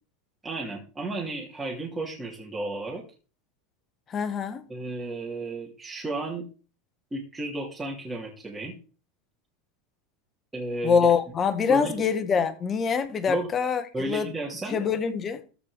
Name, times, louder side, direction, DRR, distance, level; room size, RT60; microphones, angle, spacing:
voice 1, 0.4-3.0 4.7-6.5 7.1-8.7 10.5-11.0 11.7-11.9 13.3-13.5 13.9-14.8, right 2 dB, 10° right, 2.9 m, -33 dB
voice 2, 4.1-4.6 10.8-14.3 14.7-15.4, left 6 dB, 25° left, 1.5 m, -25 dB
14.0 x 5.0 x 5.1 m
supercardioid pair, 130°, 0 cm